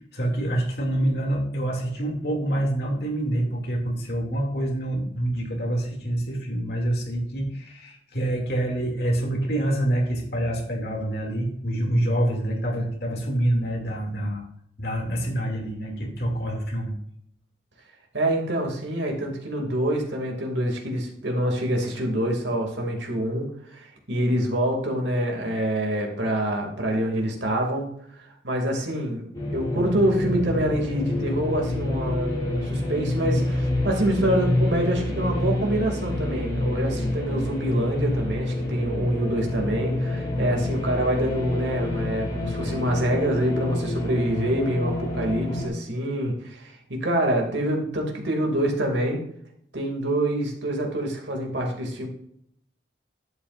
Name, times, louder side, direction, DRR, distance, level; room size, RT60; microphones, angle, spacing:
voice 1, 0.1-14.5 14.8-17.0, right 1 dB, 60° left, 0 dB, 2.6 m, -26 dB
voice 2, 18.1-27.9 28.2-29.3 29.5-49.2 49.7-52.1, right 1 dB, 80° right, 1 dB, 2.6 m, -26 dB
sound 1, 29.3-45.7, left 1 dB, 20° left, 3.8 m, -28 dB
11.0 x 8.6 x 2.6 m, 0.70 s
head